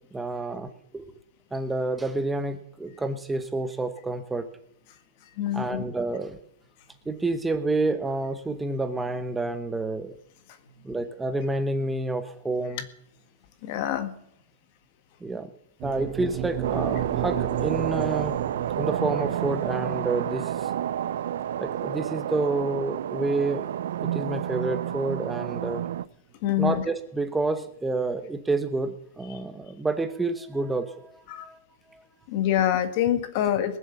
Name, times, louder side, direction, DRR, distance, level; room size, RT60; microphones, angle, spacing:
voice 1, 0.1-1.0 1.5-4.5 5.5-6.4 7.1-10.2 10.8-12.8 15.2-15.5 15.8-20.7 21.6-23.7 24.0-25.8 26.6-31.6 31.9-32.0, right 3 dB, 10° right, 9 dB, 0.9 m, -29 dB
voice 2, 5.4-5.8 13.6-14.1 26.4-26.8 31.3-31.5 32.3-33.8, left 11 dB, 50° left, 9 dB, 1.7 m, -25 dB
sound 1, 15.8-24.0, right 11 dB, 40° right, 1.0 m, -35 dB
sound 2, 16.6-26.1, right 10 dB, 80° right, 0.5 m, -30 dB
20.0 x 7.4 x 7.0 m, 0.72 s
supercardioid pair, 150°, 0 cm